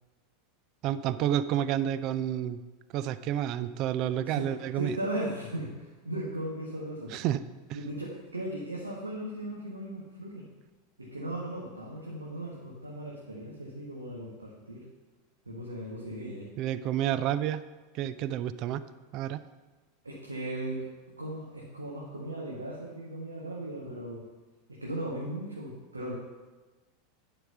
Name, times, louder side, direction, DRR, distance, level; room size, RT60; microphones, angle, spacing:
voice 1, 0.8-2.6 2.9-5.0 7.1-7.4 16.6-17.6 17.9-18.8 19.1-19.4, right 11 dB, 45° right, 14 dB, 0.4 m, -29 dB
voice 2, 4.7-7.2 7.7-10.4 11.0-14.8 15.5-16.5 20.0-20.9 21.2-24.3 24.7-26.1, right 1 dB, 80° right, -4 dB, 1.5 m, -37 dB
11.0 x 5.0 x 6.8 m, 1.3 s
figure-of-eight pair, 85°, 0 cm